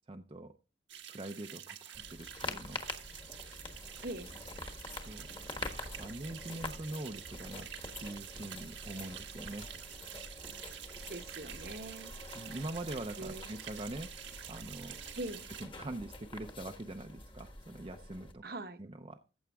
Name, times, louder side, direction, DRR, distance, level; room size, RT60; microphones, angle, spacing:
voice 1, 0.1-0.5 1.1-2.8 5.1-5.3 6.0-7.7 8.0-9.7 12.3-14.1 14.5-15.0 15.6-18.4 18.8-19.2, right 2 dB, 30° right, 0.6 m, -43 dB
sound 1, 0.9-15.6, right 10 dB, 80° right, 1.4 m, -48 dB
sound 2, 1.9-18.3, left 2 dB, 25° left, 1.3 m, -46 dB
voice 2, 11.1-12.1 13.2-13.5 15.2-15.5 18.4-18.8, right 2 dB, 55° right, 1.1 m, -42 dB
14.5 x 7.9 x 3.5 m
head